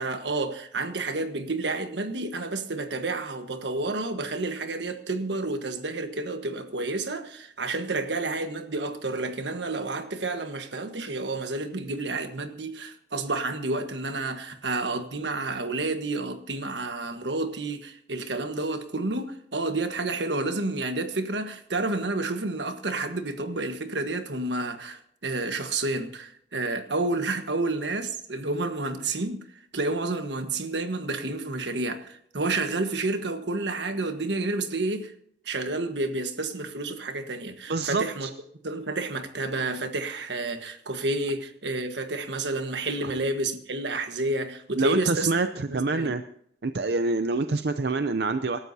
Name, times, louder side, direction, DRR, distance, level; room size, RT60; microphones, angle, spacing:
voice 1, 0.0-29.4 29.7-35.1 35.4-38.3 38.6-45.3 45.7-46.1, right 2 dB, 85° right, 1.4 m, -30 dB
voice 2, 37.7-38.3 43.0-43.1 44.8-45.5 45.7-46.2 46.6-48.6, right 3 dB, 65° right, 0.6 m, -26 dB
26.5 x 12.5 x 2.8 m
head